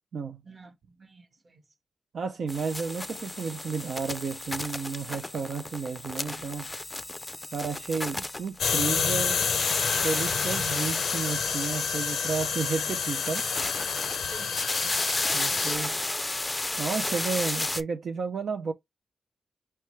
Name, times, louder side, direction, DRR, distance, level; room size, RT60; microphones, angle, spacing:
voice 1, 0.4-1.7 14.2-15.9, right 3 dB, 45° right, 1.0 m, -50 dB
voice 2, 2.1-6.7 7.5-9.5 10.0-13.4 15.3-16.0 16.8-18.7, right 5 dB, 70° right, 0.4 m, -32 dB
sound 1, 2.5-9.0 9.3-12.1 13.0-17.8, left 2 dB, 20° left, 0.4 m, -33 dB
sound 2, 8.6-15.8, left 6 dB, 80° left, 0.6 m, -28 dB
5.6 x 2.2 x 3.0 m
cardioid pair, 80°, 0 cm